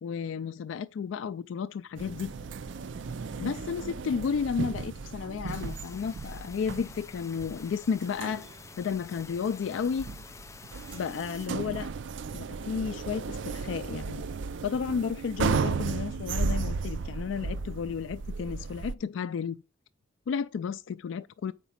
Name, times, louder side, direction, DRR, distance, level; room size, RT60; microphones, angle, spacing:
voice 1, 0.0-2.3 3.4-8.5 8.8-10.1 10.9-11.9 12.3-14.2 14.6-19.6 20.3-21.5, left 6 dB, 85° left, 0.3 m, -32 dB
sound 1, 2.0-9.0 9.5-10.2, left 1 dB, 30° left, 1.6 m, -55 dB
sound 2, 2.0-18.9, right 5 dB, 75° right, 0.4 m, -35 dB
sound 3, 5.5-11.5, left 4 dB, 15° left, 0.4 m, -48 dB
8.1 x 4.9 x 5.7 m
head